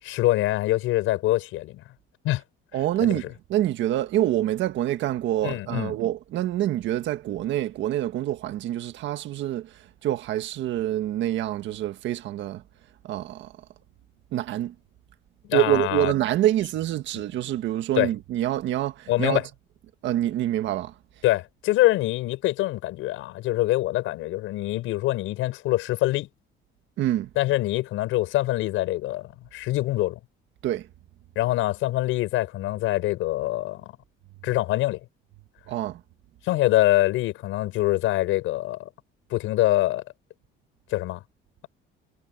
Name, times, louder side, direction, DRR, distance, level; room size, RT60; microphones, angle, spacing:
voice 1, 0.0-1.8 2.2-2.4 3.1-3.2 5.4-5.9 15.5-16.1 18.0-18.1 19.1-19.4 21.2-26.3 27.4-30.2 31.3-34.0 34.4-35.0 36.4-38.9 39.3-40.0 40.9-41.2, left 16 dB, 75° left, 6.4 m, -24 dB
voice 2, 2.7-12.6 13.0-13.5 14.3-14.7 15.5-19.4 20.0-20.9 27.0-27.3 30.6-30.9 35.7-36.0, right 13 dB, 65° right, 1.8 m, -26 dB
cardioid pair, 145°, 21 cm